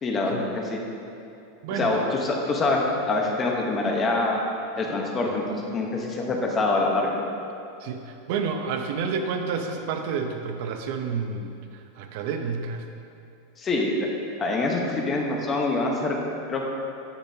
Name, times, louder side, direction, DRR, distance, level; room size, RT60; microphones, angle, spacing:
voice 1, 0.0-0.9 1.8-4.4 4.8-7.2 13.6-13.9 14.4-16.2 16.5-16.7, left 2 dB, 20° left, 0 dB, 1.0 m, -25 dB
voice 2, 7.8-12.9, right 5 dB, 55° right, 5 dB, 0.6 m, -30 dB
10.0 x 8.2 x 2.8 m, 2.6 s
supercardioid pair, 165°, 0 cm